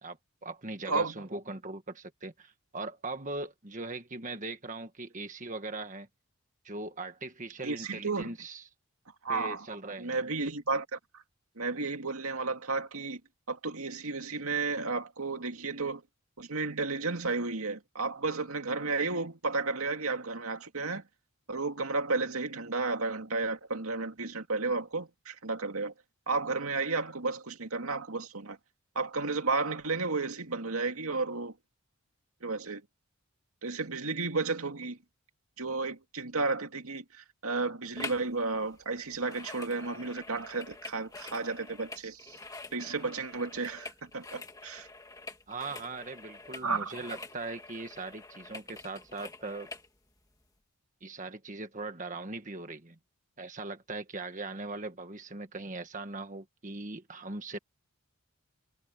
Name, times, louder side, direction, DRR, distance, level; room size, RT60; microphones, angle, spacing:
voice 1, 0.0-6.1 6.6-8.6 9.3-10.2 45.5-49.7 51.0-53.0 53.4-57.6, right 3 dB, 35° right, 1.5 m, -40 dB
voice 2, 7.6-8.3 9.2-9.7 10.0-11.2 11.6-13.2 13.5-16.0 16.4-21.0 21.5-25.9 26.3-28.6 29.0-31.5 32.4-32.8 33.6-35.0 35.6-42.4 42.7-44.9 46.6-46.9, right 3 dB, 75° right, 2.3 m, -33 dB
sound 1, 38.0-38.3 38.6-49.9 50.4-50.5, left 3 dB, 15° left, 1.9 m, -46 dB
head